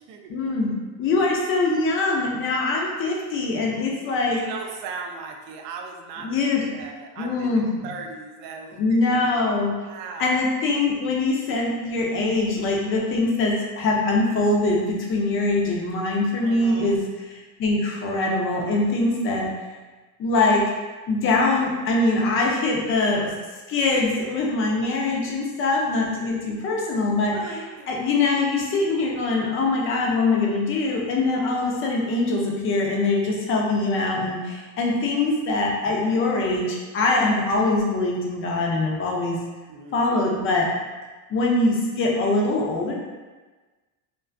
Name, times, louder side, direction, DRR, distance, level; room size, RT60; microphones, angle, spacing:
voice 1, 0.3-0.7 1.0-4.4 6.2-6.6 7.2-7.9 8.8-9.7 10.2-19.5 20.2-20.6 21.1-23.3 23.7-27.6 27.9-39.4 39.9-40.7 41.3-42.9, left 2 dB, 30° left, -2 dB, 0.4 m, -23 dB
voice 2, 4.3-9.3 9.8-10.4 16.4-16.9 25.9-26.3 27.3-28.0 35.8-36.5 39.7-40.3, right 4 dB, 60° right, 3 dB, 0.5 m, -39 dB
2.4 x 2.2 x 2.4 m, 1.3 s
cardioid pair, 130°, 42 cm